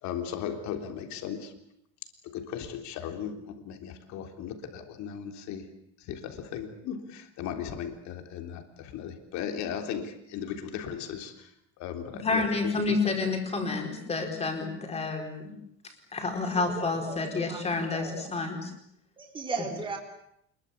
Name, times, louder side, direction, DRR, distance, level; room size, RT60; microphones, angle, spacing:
voice 1, 0.0-1.5 2.2-5.6 6.0-11.5 11.8-13.0, left 8 dB, 50° left, 5 dB, 3.6 m, -37 dB
voice 2, 12.2-15.5 16.1-18.7, left 3 dB, 15° left, 3 dB, 4.7 m, -29 dB
voice 3, 16.5-17.6 17.9-18.3 19.2-20.0, right 4 dB, 15° right, 1 dB, 3.9 m, -37 dB
26.5 x 22.0 x 8.5 m, 0.73 s
cardioid pair, 165°, 35 cm